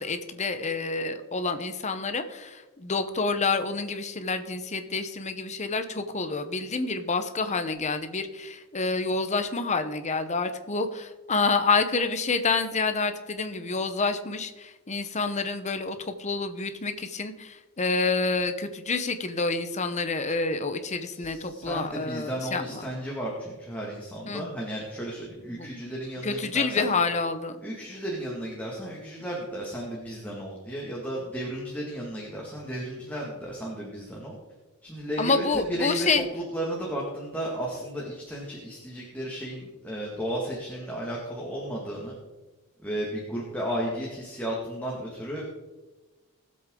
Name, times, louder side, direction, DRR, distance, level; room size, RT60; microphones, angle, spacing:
voice 1, 0.0-22.8 24.3-24.5 25.5-25.7 26.2-27.6 35.2-36.3, left 4 dB, 30° left, 9 dB, 0.9 m, -28 dB
voice 2, 21.1-27.0 27.6-34.3 34.8-42.1 42.8-45.4, right 1 dB, 5° left, -3 dB, 2.0 m, -34 dB
19.0 x 7.8 x 3.8 m, 1.2 s
head